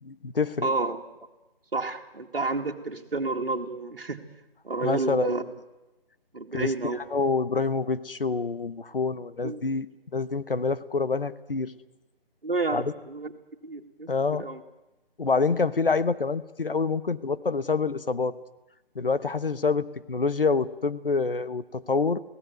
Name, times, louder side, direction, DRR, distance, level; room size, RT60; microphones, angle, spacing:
voice 1, 0.0-0.7 4.8-5.4 6.5-6.7 7.1-9.9 10.1-11.7 12.7-12.9 14.1-14.5 15.2-18.4 18.9-22.2, left 4 dB, 65° left, 13 dB, 1.2 m, -26 dB
voice 2, 0.6-1.0 1.7-4.2 4.6-5.4 6.3-7.0 9.4-9.6 12.4-13.3 13.6-14.1 14.4-14.6, right 3 dB, 65° right, 3 dB, 2.4 m, -30 dB
22.0 x 17.0 x 9.4 m, 1.0 s
figure-of-eight pair, 150°, 30 cm